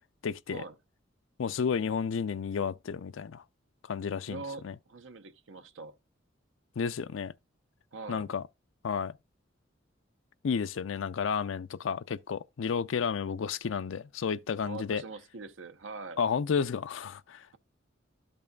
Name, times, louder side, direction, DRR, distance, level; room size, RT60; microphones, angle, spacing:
voice 1, 0.2-0.6 1.4-3.4 3.9-4.7 6.8-7.3 8.1-8.4 8.8-9.2 10.4-15.0 16.2-17.6, left 6 dB, 85° left, 0.4 m, -32 dB
voice 2, 4.3-6.0 7.9-8.3 14.6-16.2, right 4 dB, 85° right, 0.8 m, -43 dB
13.0 x 5.4 x 2.3 m
head